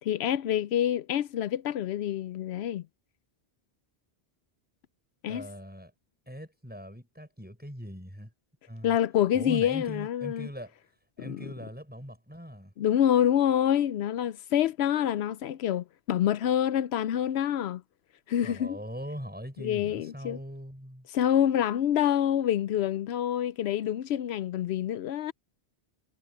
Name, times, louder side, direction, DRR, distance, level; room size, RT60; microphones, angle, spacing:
voice 1, 0.0-2.8 5.2-5.5 8.8-10.5 11.2-11.4 12.8-17.8 18.3-18.8 19.6-20.4 21.1-25.3, left 10 dB, 85° left, 0.8 m, -27 dB
voice 2, 5.3-5.9 6.3-8.3 8.7-9.0 9.3-10.8 11.2-12.7 18.4-21.1, equal, 10° right, 6.7 m, -41 dB
omnidirectional pair, 1.1 m